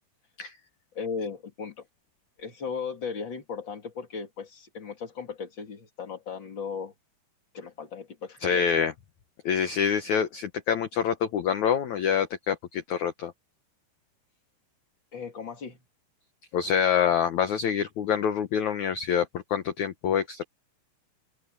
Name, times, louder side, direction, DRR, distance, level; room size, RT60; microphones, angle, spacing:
voice 1, 0.9-1.9 2.4-6.9 7.5-8.7 15.1-15.8, left 5 dB, 35° left, 2.4 m, -36 dB
voice 2, 8.4-8.9 9.5-13.3 16.5-20.4, left 7 dB, 70° left, 1.8 m, -26 dB
open air
omnidirectional pair, 4.8 m